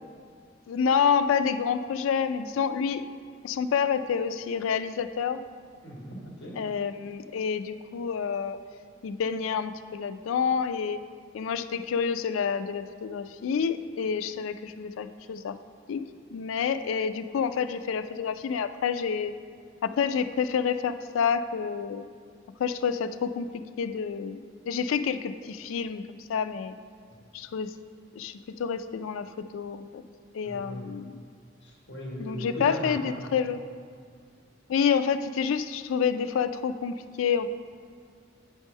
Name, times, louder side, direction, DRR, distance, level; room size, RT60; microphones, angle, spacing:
voice 1, 0.7-3.0 3.4-5.4 6.6-8.6 9.0-11.0 11.3-15.6 15.9-16.0 16.3-19.3 19.8-22.0 22.6-23.5 23.8-26.7 27.3-27.8 28.2-30.0 30.3-31.2 32.2-33.6 34.7-37.5, left 6 dB, 90° left, 12 dB, 0.3 m, -28 dB
voice 2, 5.8-6.6 27.1-27.2 30.4-30.9 31.6-33.3, equal, 60° left, -3 dB, 1.6 m, -38 dB
8.7 x 3.6 x 5.3 m, 2.1 s
head